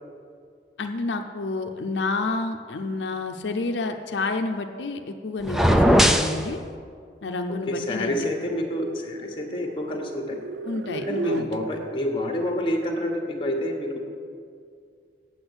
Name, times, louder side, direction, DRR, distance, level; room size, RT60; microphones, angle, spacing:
voice 1, 0.8-6.6 7.2-8.3 10.7-11.5, left 3 dB, 90° left, 5 dB, 0.6 m, -29 dB
sound 1, 5.4-6.4, equal, ahead, 0.4 m, -18 dB
voice 2, 7.7-10.4 11.1-14.0, left 1 dB, 30° left, 2 dB, 1.3 m, -28 dB
sound 2, 8.5-11.7, right 3 dB, 85° right, 0.4 m, -34 dB
7.9 x 7.1 x 8.0 m, 2.2 s
head